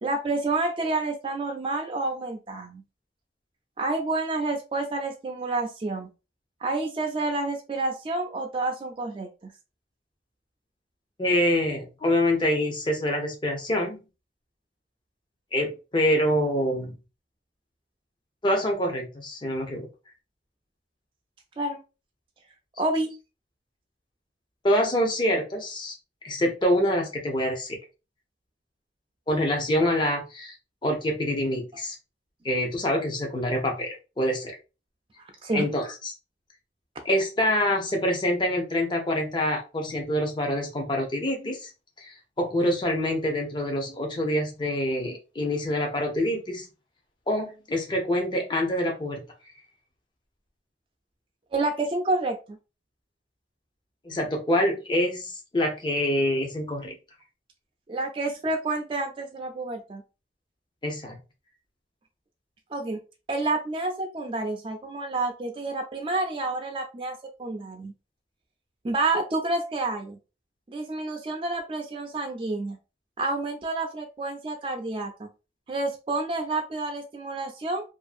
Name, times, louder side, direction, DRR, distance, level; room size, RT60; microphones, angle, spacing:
voice 1, 0.0-2.8 3.8-6.1 6.6-9.5 21.6-21.8 22.8-23.2 35.4-35.7 51.5-52.6 57.9-60.0 62.7-63.0 63.3-67.9 68.8-70.2 70.7-72.8 73.2-75.3 75.7-77.8, right 2 dB, 30° right, 3 dB, 0.3 m, -29 dB
voice 2, 11.2-14.0 15.5-16.9 18.4-19.9 24.6-26.0 26.2-27.8 29.3-30.5 30.8-31.9 32.4-34.6 35.5-36.1 37.0-41.7 42.0-46.7 47.3-49.2 54.0-56.9 60.8-61.2, left 1 dB, 25° left, 2 dB, 0.6 m, -26 dB
2.5 x 2.5 x 2.4 m, 0.30 s
head